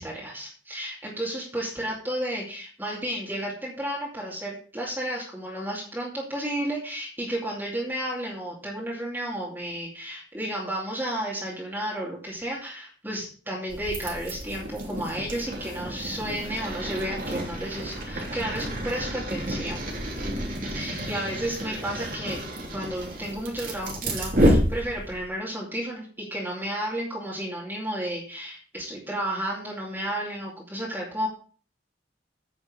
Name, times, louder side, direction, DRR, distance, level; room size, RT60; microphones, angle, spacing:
voice 1, 0.0-19.8 20.7-22.4 22.7-31.3, right 1 dB, 10° right, -5 dB, 2.6 m, -32 dB
sound 1, 13.7-25.3, equal, 50° right, 3.2 m, -29 dB
9.5 x 6.2 x 6.5 m, 0.40 s
head